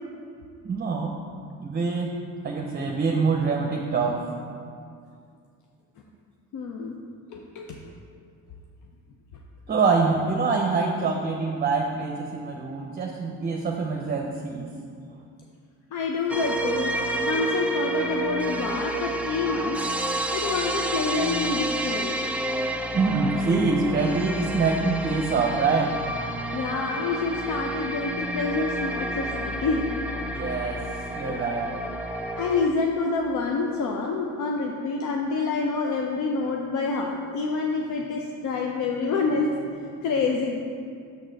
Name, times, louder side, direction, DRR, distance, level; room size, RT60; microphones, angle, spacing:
voice 1, 0.6-1.2 1.6-2.1 2.4-4.2 9.7-14.7 22.9-25.9 30.3-30.8 31.1-31.7, right 4 dB, 35° right, 1 dB, 0.8 m, -25 dB
voice 2, 6.5-7.0 7.3-7.8 15.9-16.9 17.2-19.8 20.3-22.1 26.5-30.0 31.3-31.4 32.4-40.6, left 4 dB, 75° left, 1 dB, 0.7 m, -27 dB
sound 1, 16.3-32.7, right 1 dB, 5° right, 0.5 m, -30 dB
6.7 x 6.4 x 4.0 m, 2.3 s
cardioid pair, 90°, 30 cm